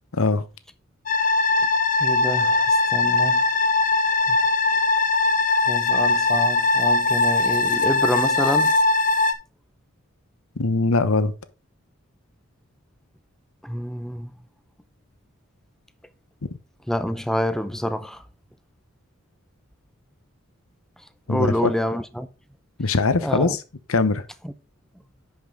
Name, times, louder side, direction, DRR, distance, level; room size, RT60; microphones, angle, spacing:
voice 1, 0.1-0.5 10.6-11.3 21.3-21.7 22.8-23.6 23.9-24.2, left 3 dB, 75° left, 0.9 m, -21 dB
sound 1, 1.1-9.3, left 3 dB, 35° left, 0.9 m, -20 dB
voice 2, 2.0-3.7 4.3-4.4 5.6-8.8 13.6-14.4 16.9-18.2 21.3-22.3 23.2-23.6 24.4-24.5, equal, ahead, 0.5 m, -27 dB
10.5 x 5.4 x 3.8 m
head